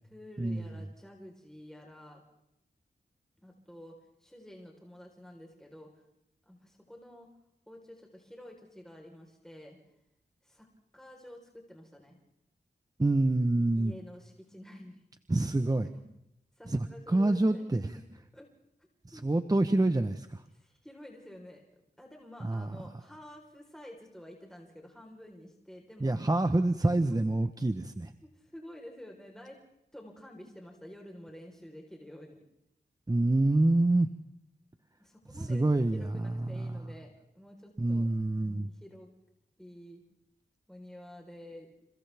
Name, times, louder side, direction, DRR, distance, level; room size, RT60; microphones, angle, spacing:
voice 1, 0.0-2.2 3.4-5.9 6.5-7.3 7.7-9.8 10.4-10.7 10.9-12.2 13.7-15.0 15.8-16.1 16.6-18.1 18.3-18.5 19.1-19.3 20.5-21.6 22.0-26.1 26.8-27.2 28.2-29.6 29.9-32.4 35.0-38.1 38.4-39.1 39.6-40.0 40.7-41.7, left 1 dB, 5° left, 0 dB, 4.2 m, -50 dB
voice 2, 13.0-13.9 15.3-15.9 16.7-17.8 19.1-20.4 22.4-22.7 26.0-28.1 33.1-34.1 35.5-36.0 36.5-36.8 37.8-38.7, right 2 dB, 20° right, 8 dB, 1.0 m, -26 dB
30.0 x 27.5 x 3.5 m, 0.83 s
cardioid pair, 60°, 18 cm